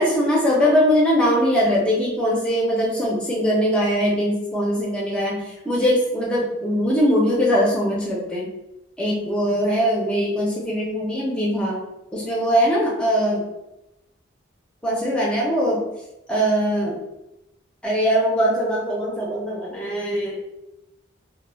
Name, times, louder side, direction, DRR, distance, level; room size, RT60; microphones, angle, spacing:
voice 1, 0.0-8.5 9.0-11.8 12.1-13.4 14.8-15.8 16.3-17.0 17.8-20.4, equal, 5° left, -4 dB, 0.6 m, -21 dB
2.2 x 2.1 x 3.3 m, 0.91 s
head